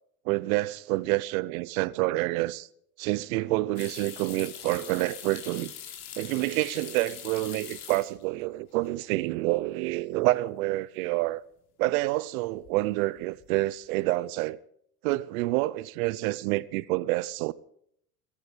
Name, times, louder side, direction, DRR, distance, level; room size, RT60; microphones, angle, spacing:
voice 1, 0.2-2.7 3.0-5.7 6.2-11.4 11.8-14.6 15.0-17.5, right 19 dB, 70° right, 0.8 m, -28 dB
sound 1, 3.8-8.4 8.7-9.3 9.7-9.8 12.5-12.9 13.2-13.7, left 9 dB, 60° left, 3.6 m, -43 dB
17.5 x 15.0 x 5.1 m
hypercardioid pair, 80°, 43 cm